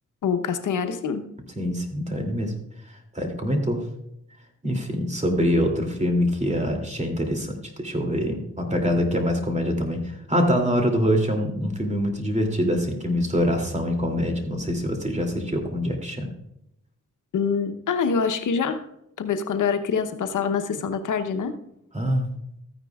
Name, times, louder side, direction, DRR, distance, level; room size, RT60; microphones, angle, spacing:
voice 1, 0.2-1.2 17.3-18.8 19.2-21.5, left 6 dB, 90° left, 8 dB, 0.9 m, -25 dB
voice 2, 1.6-2.5 3.1-3.8 4.6-16.3 21.9-22.3, equal, 25° right, 3 dB, 2.6 m, -24 dB
14.0 x 9.7 x 2.3 m, 0.79 s
cardioid pair, 60°, 30 cm